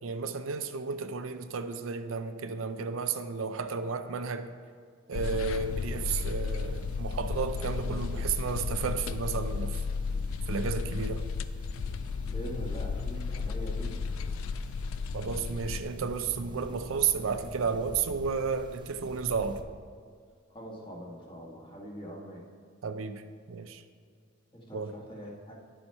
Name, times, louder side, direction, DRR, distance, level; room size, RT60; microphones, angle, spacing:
voice 1, 0.0-4.5 5.1-9.8 10.5-11.3 15.1-19.6 22.8-23.8 24.7-25.0, right 5 dB, 75° right, 9 dB, 0.5 m, -32 dB
sound 1, 5.1-15.8, left 5 dB, 80° left, 0.4 m, -34 dB
sound 2, 5.6-19.6, right 1 dB, 25° right, 0.5 m, -46 dB
voice 2, 12.2-13.9 20.5-22.4 24.5-25.5, equal, 25° left, -2 dB, 1.7 m, -43 dB
10.5 x 7.1 x 4.4 m, 2.1 s
head